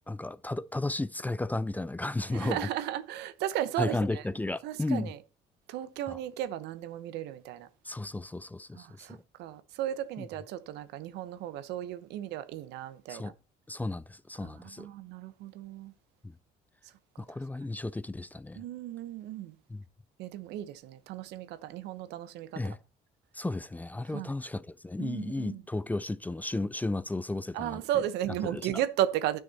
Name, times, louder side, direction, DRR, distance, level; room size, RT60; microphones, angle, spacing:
voice 1, 0.1-2.7 3.8-5.1 6.1-6.2 7.8-9.2 10.2-10.3 13.1-13.3 13.7-14.9 16.2-16.3 17.2-18.6 19.7-19.8 22.6-22.8 23.3-28.0 28.4-28.8, left 2 dB, 10° left, 0.4 m, -34 dB
voice 2, 2.3-4.2 4.6-5.2 5.7-7.7 8.7-13.3 14.4-15.9 18.6-19.5 20.2-22.5 24.1-24.3 25.0-25.6 27.5-29.4, right 12 dB, 90° right, 1.1 m, -35 dB
11.5 x 6.3 x 4.1 m
cardioid pair, 110°, 17 cm